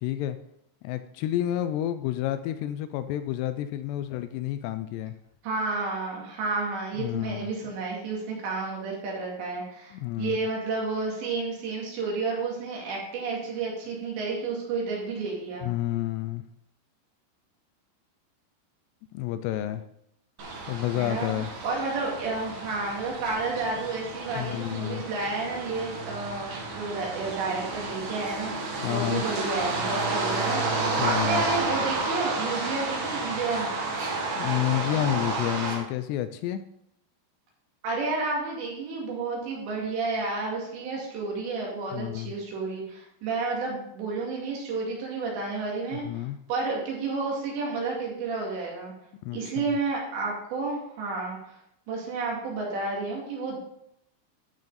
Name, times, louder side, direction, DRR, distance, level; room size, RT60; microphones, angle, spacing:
voice 1, 0.0-0.4 0.8-5.1 7.0-7.5 9.9-10.4 15.6-16.4 19.1-19.8 20.7-21.5 24.4-25.0 28.8-29.2 31.0-31.4 34.4-36.6 41.9-42.3 46.0-46.4 49.2-49.7, left 13 dB, 85° left, 11 dB, 2.6 m, -30 dB
voice 2, 5.4-15.7 21.0-33.7 37.8-48.9 49.3-51.6 51.9-53.6, right 3 dB, 75° right, -2 dB, 4.6 m, -31 dB
sound 1, 20.4-35.8, right 3 dB, 50° right, 2.6 m, -31 dB
12.0 x 6.6 x 4.1 m, 0.76 s
omnidirectional pair, 5.1 m